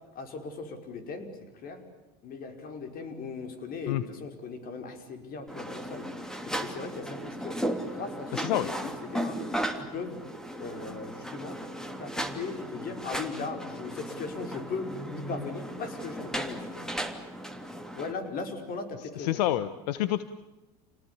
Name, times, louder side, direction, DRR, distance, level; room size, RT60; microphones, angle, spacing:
voice 1, 0.2-1.8 2.2-6.1 6.4-9.4 9.8-10.2 10.6-11.6 12.0-16.9 18.0-19.4, left 4 dB, 45° left, 7 dB, 5.4 m, -38 dB
sound 1, 5.5-18.1, right 1 dB, 5° left, 3.0 m, -36 dB
voice 2, 8.3-8.7 19.2-20.2, left 13 dB, 80° left, 14 dB, 1.2 m, -28 dB
29.0 x 19.5 x 8.5 m, 1.1 s
supercardioid pair, 100°, 21 cm